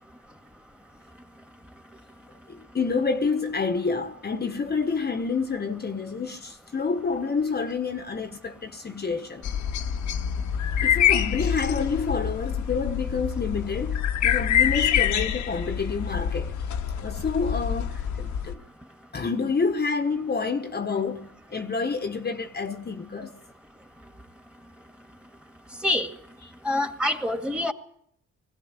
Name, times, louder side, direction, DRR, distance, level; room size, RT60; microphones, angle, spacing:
voice 1, 2.5-9.5 10.8-16.5 17.0-18.6 19.1-23.4, left 4 dB, 30° left, 1.3 m, -28 dB
sound 1, 9.4-18.5, left 9 dB, 70° left, 1.3 m, -26 dB
voice 2, 26.6-27.7, left 1 dB, 5° right, 1.9 m, -25 dB
21.0 x 16.0 x 9.8 m
cardioid pair, 90°, 30 cm